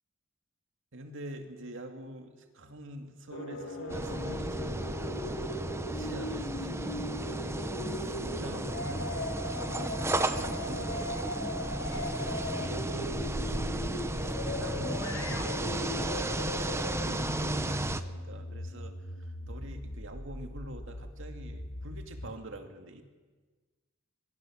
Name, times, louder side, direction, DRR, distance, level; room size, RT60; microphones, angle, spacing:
voice 1, 0.9-11.1 11.9-17.1 17.4-23.0, right 1 dB, 65° right, 5 dB, 2.3 m, -46 dB
sound 1, 3.3-22.4, left 1 dB, 85° left, 2.4 m, -39 dB
sound 2, 3.9-18.0, right 1 dB, 15° right, 0.8 m, -34 dB
sound 3, 11.8-16.6, left 1 dB, 65° left, 7.1 m, -49 dB
23.0 x 21.5 x 6.3 m, 1.4 s
head